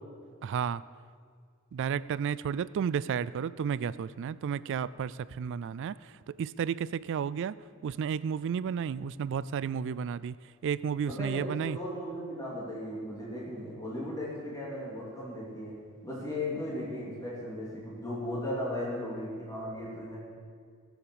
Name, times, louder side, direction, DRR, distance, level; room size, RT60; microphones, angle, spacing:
voice 1, 0.4-0.8 1.7-7.6 7.8-10.4 10.6-11.8, right 7 dB, 55° right, 18 dB, 0.3 m, -32 dB
voice 2, 11.1-15.8 16.0-20.2, left 1 dB, 15° left, -5 dB, 2.7 m, -36 dB
17.5 x 7.2 x 7.0 m, 2.1 s
head